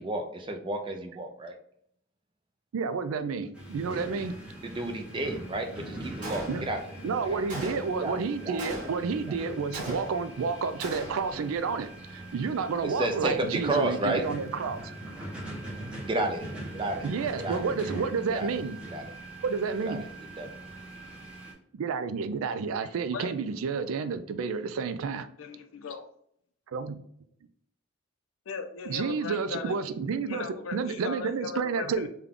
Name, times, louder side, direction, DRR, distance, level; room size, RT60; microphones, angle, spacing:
voice 1, 0.0-1.5 4.6-6.8 7.3-7.4 8.0-8.1 8.4-8.6 9.3-9.4 12.8-14.2 16.1-17.1 17.4-17.6 18.3-18.5 18.9-19.0 19.9-20.0 20.4-20.5, right 2 dB, 25° right, 0.4 m, -31 dB
voice 2, 2.7-4.4 6.5-6.6 7.0-14.9 17.0-18.8 19.4-20.0 21.7-25.3 26.7-27.0 28.9-32.1, right 5 dB, 90° right, 0.4 m, -30 dB
sound 1, 3.5-21.5, right 1 dB, 5° right, 0.8 m, -42 dB
Gunshot gunfire, 6.2-6.9 7.5-8.1 8.6-9.2 9.7-10.4 10.8-11.4, equal, 40° right, 1.1 m, -38 dB
voice 3, 22.8-23.3 25.4-26.1 28.5-30.0 30.3-32.1, left 4 dB, 75° left, 0.5 m, -38 dB
3.7 x 2.2 x 3.5 m
head